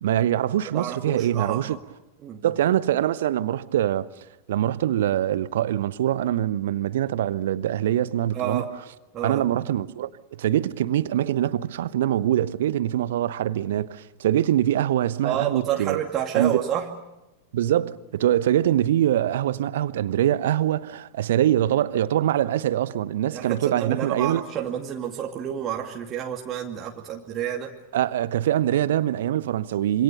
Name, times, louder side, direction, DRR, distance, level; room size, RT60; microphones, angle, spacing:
voice 1, 0.0-1.8 2.4-4.1 4.5-8.6 9.2-16.0 16.3-16.6 17.5-24.4 27.9-30.0, right 12 dB, 60° right, 1.0 m, -23 dB
voice 2, 0.7-1.8 2.2-2.5 8.3-8.7 9.1-9.4 15.2-16.9 23.3-27.7, right 10 dB, 30° right, 2.4 m, -29 dB
26.5 x 26.5 x 6.9 m
figure-of-eight pair, 90°, 0 cm